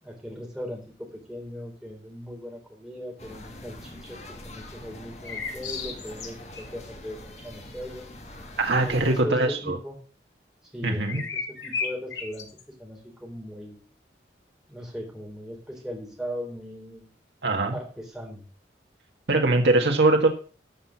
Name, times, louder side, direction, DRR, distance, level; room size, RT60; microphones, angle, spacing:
voice 1, 0.0-4.2 4.4-8.1 8.8-10.0 10.7-12.5 12.8-13.8 14.7-17.1 17.7-18.4, equal, 5° right, -1 dB, 3.8 m, -38 dB
sound 1, 3.2-9.2, left 1 dB, 40° left, 2.0 m, -44 dB
sound 2, 5.2-6.6 11.1-12.6, left 5 dB, 80° left, 3.0 m, -33 dB
voice 2, 8.6-9.8 10.8-11.2 17.4-17.8 19.3-20.3, right 2 dB, 70° right, 2 dB, 1.5 m, -22 dB
12.5 x 6.0 x 7.2 m, 0.40 s
head